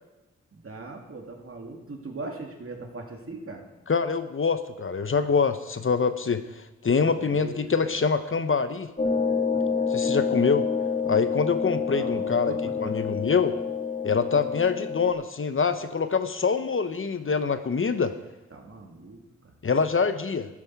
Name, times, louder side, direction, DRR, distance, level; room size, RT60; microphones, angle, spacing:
voice 1, 0.5-3.6 7.0-7.9 11.8-12.9 18.5-19.5, right 3 dB, 50° right, 2 dB, 2.3 m, -40 dB
voice 2, 3.9-6.4 6.8-8.9 9.9-10.7 11.1-13.5 14.0-18.1 19.6-20.5, left 5 dB, 45° left, 10 dB, 0.8 m, -25 dB
sound 1, 9.0-15.1, left 5 dB, 30° left, 1.7 m, -27 dB
13.5 x 9.6 x 4.7 m, 1.0 s
cardioid pair, 60°, 29 cm